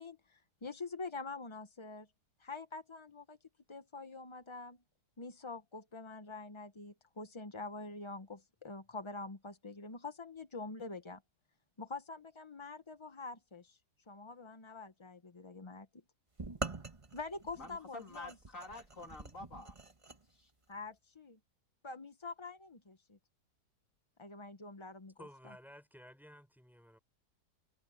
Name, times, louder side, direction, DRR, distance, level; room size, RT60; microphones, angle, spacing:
voice 1, 0.0-2.1 2.4-3.4 3.7-4.8 5.2-11.2 11.8-13.8 14.1-15.9 17.1-18.3 20.7-21.4 21.8-23.2 24.2-25.1, left 3 dB, 25° left, 0.6 m, -46 dB
sound 1, 16.4-20.2, right 3 dB, 20° right, 1.2 m, -44 dB
voice 2, 17.6-19.8 20.3-20.5, left 2 dB, 55° left, 2.3 m, -49 dB
voice 3, 25.2-27.0, equal, ahead, 4.9 m, -55 dB
omnidirectional pair, 1.7 m